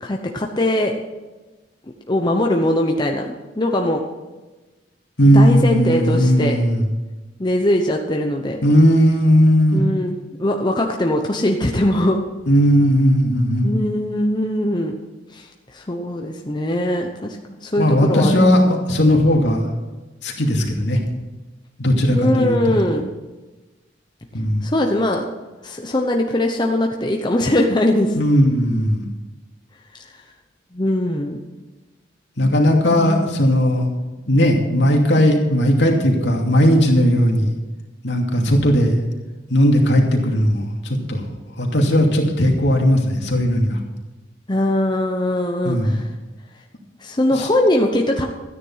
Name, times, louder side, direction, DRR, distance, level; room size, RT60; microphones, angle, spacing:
voice 1, 0.0-0.9 2.1-4.0 5.3-6.6 7.4-8.6 9.7-12.2 13.6-15.0 15.3-15.5 15.7-18.4 22.1-23.1 24.6-25.2 25.6-28.1 30.7-31.4 33.0-33.3 44.5-46.1 47.0-48.2, left 1 dB, 25° left, 1 dB, 0.9 m, -21 dB
voice 2, 5.2-6.8 8.6-9.8 12.5-13.7 17.8-19.6 20.2-21.0 21.8-22.6 24.3-24.6 28.2-29.0 32.4-33.9 34.3-37.5 38.0-38.9 39.5-41.2 41.6-43.8 45.6-46.0 47.4-47.5, equal, 65° left, 0 dB, 2.6 m, -16 dB
13.5 x 9.9 x 5.7 m, 1.2 s
head